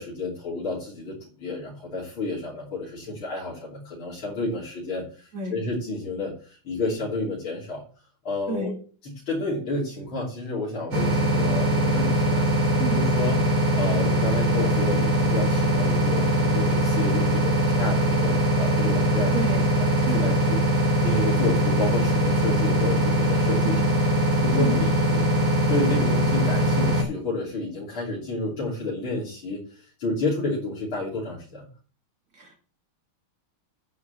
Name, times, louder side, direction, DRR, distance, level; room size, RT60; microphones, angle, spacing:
voice 1, 0.0-7.8 8.2-8.7 9.0-12.5 12.9-13.4 13.8-19.3 20.1-23.9 24.4-25.3 25.7-31.7, left 2 dB, 70° left, -7 dB, 4.2 m, -30 dB
sound 1, 10.9-27.0, equal, 80° right, 4.4 m, -22 dB
voice 2, 19.3-19.7 20.0-20.3 23.6-24.0 24.6-24.8 32.3-32.6, right 3 dB, 40° right, 2 dB, 2.8 m, -31 dB
9.6 x 5.4 x 8.3 m, 0.40 s
omnidirectional pair, 2.3 m